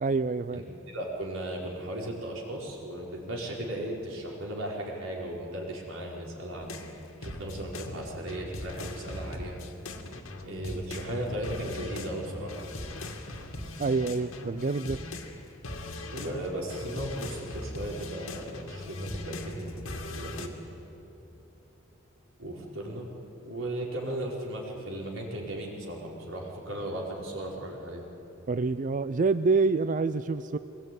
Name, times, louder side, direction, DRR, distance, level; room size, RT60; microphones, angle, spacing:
voice 1, 0.0-0.6 13.8-15.0 28.5-30.6, right 4 dB, 40° right, 13 dB, 0.4 m, -27 dB
voice 2, 0.9-6.8 7.2-9.6 10.4-12.5 16.1-20.5 22.4-23.1 23.4-28.0, right 1 dB, 80° right, -2 dB, 5.0 m, -36 dB
sound 1, 6.6-15.4 15.6-20.5, left 1 dB, 90° left, 2.3 m, -39 dB
22.5 x 20.0 x 9.5 m, 3.0 s
head